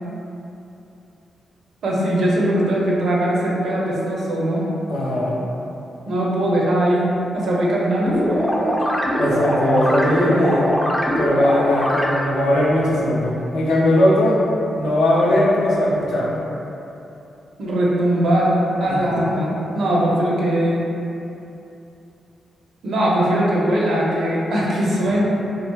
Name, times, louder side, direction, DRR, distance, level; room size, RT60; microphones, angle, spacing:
voice 1, 1.8-4.7 6.1-8.7 17.6-20.9 22.8-25.2, right 1 dB, 70° right, -5 dB, 0.5 m, -20 dB
voice 2, 4.9-5.4 9.2-10.7 11.2-14.4 14.7-16.3 18.9-19.0, left 1 dB, 75° left, -6 dB, 0.5 m, -19 dB
sound 1, 8.1-12.5, equal, 5° left, 0.3 m, -22 dB
2.4 x 2.4 x 2.2 m, 2.8 s
supercardioid pair, 45°, 0 cm